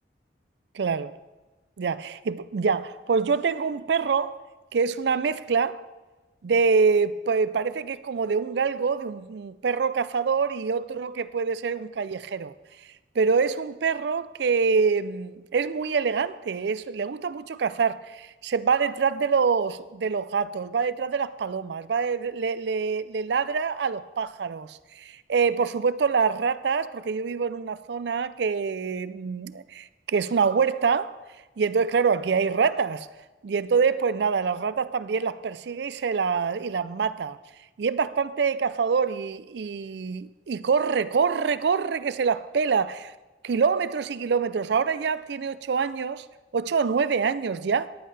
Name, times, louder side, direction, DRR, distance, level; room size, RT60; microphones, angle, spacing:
voice 1, 0.7-1.2 1.8-4.4 4.7-5.8 6.4-12.5 13.2-31.1 31.6-33.1 33.4-37.4 37.8-43.1 43.4-46.3 46.5-47.9, right 5 dB, 65° right, 0.4 m, -25 dB
14.5 x 10.5 x 3.3 m
head